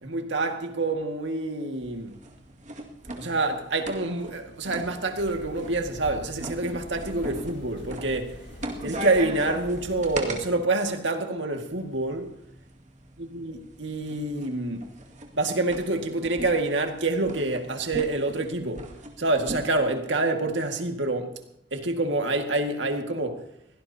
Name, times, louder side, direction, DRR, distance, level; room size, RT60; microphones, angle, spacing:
voice 1, 0.0-2.2 3.2-8.4 8.8-12.3 13.2-14.9 15.3-18.9 19.2-21.4 21.7-23.5, right 2 dB, 75° right, 2.0 m, -27 dB
sound 1, 1.8-10.4 11.7-19.9, right 1 dB, 40° right, 2.2 m, -40 dB
sound 2, 5.2-10.3, equal, 70° left, 2.8 m, -44 dB
23.0 x 17.0 x 2.9 m
head